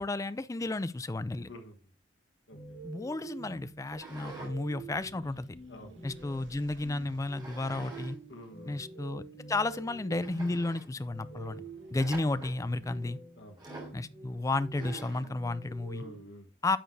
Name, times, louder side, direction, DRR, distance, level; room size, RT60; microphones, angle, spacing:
voice 1, 0.0-1.5 2.8-5.5 6.0-8.2 8.6-9.2 9.5-11.6 11.9-13.2 13.9-16.0 16.6-16.8, left 2 dB, 15° left, 0.3 m, -32 dB
sound 1, 2.5-16.2, right 3 dB, 55° left, 3.4 m, -48 dB
sound 2, 3.9-4.5 4.9-6.3 7.3-8.1 8.4-8.5 9.2-9.3 9.7-9.8 10.2-10.9 12.0-12.6 13.6-14.0 14.7-15.3, right 2 dB, 25° right, 3.1 m, -47 dB
sound 3, 3.9-13.4, right 1 dB, 70° right, 1.0 m, -59 dB
voice 2, 5.7-6.0 8.3-8.8 11.4-11.7 13.3-13.6 15.9-16.5, equal, 70° left, 1.3 m, -48 dB
10.0 x 6.4 x 2.6 m
head